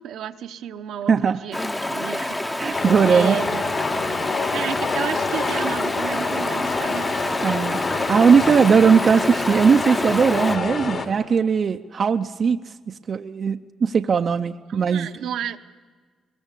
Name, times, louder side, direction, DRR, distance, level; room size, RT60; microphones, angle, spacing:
voice 1, 0.0-3.7 4.5-7.2 14.7-15.6, right 9 dB, 80° right, 7 dB, 0.9 m, -32 dB
voice 2, 1.1-1.4 2.1-2.3 2.6-3.4 7.4-15.1, right 6 dB, 50° right, 7 dB, 0.6 m, -19 dB
Stream, 1.5-10.6, left 1 dB, 15° left, 0.9 m, -28 dB
sound 1, 2.7-11.1, left 4 dB, 55° left, 2.9 m, -27 dB
21.5 x 21.5 x 8.3 m, 1.5 s
cardioid pair, 90°, 0 cm